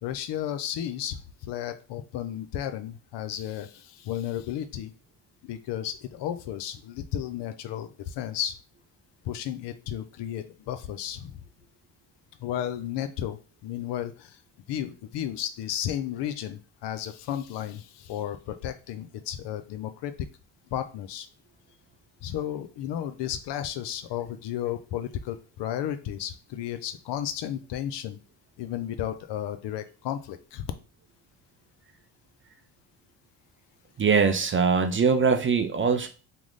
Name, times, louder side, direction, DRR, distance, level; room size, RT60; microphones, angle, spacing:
voice 1, 0.0-4.9 5.4-8.6 9.2-11.4 12.4-14.4 14.7-20.3 20.7-21.3 22.2-28.2 28.6-30.7, left 11 dB, 60° left, 10 dB, 0.5 m, -33 dB
voice 2, 34.0-36.1, right 5 dB, 25° right, 7 dB, 0.5 m, -22 dB
3.0 x 2.0 x 3.8 m, 0.35 s
hypercardioid pair, 55°, 47 cm